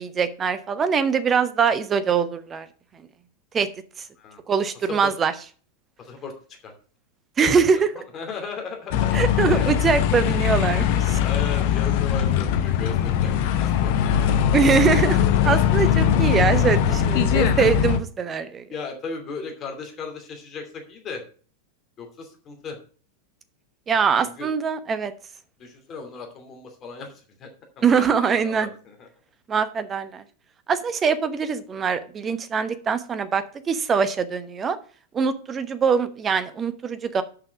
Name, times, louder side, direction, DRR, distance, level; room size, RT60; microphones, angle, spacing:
voice 1, 0.0-2.7 3.5-3.7 4.5-5.3 7.4-7.9 9.1-11.2 14.5-18.6 23.9-25.1 27.8-28.7 29.5-30.2 30.7-34.8 35.1-37.2, right 6 dB, 20° right, 11 dB, 1.0 m, -23 dB
voice 2, 6.0-6.3 6.6-6.7 7.4-7.5 8.1-9.1 9.5-9.7 11.2-13.3 13.6-13.9 14.2-14.3 18.7-21.2 22.0-22.8 24.2-24.5 25.6-27.1 27.4-27.5 27.8-29.1, left 5 dB, 30° left, 3 dB, 2.6 m, -36 dB
sound 1, 8.9-18.0, left 9 dB, 50° left, 0.8 m, -21 dB
6.7 x 5.8 x 7.1 m, 0.42 s
figure-of-eight pair, 90°, 0 cm